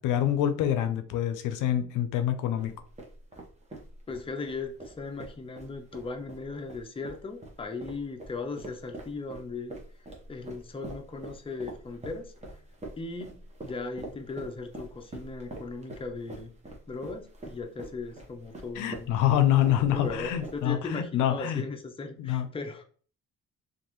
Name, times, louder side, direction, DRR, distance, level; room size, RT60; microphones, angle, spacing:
voice 1, 0.0-2.8 18.8-21.6 22.2-22.5, left 11 dB, 85° left, 0.5 m, -26 dB
sound 1, 2.6-20.9, right 2 dB, 20° right, 1.0 m, -44 dB
voice 2, 4.1-12.3 13.0-16.5 16.9-19.1 19.8-22.8, left 3 dB, 20° left, 0.6 m, -38 dB
3.1 x 2.5 x 3.0 m
cardioid pair, 90°, 30 cm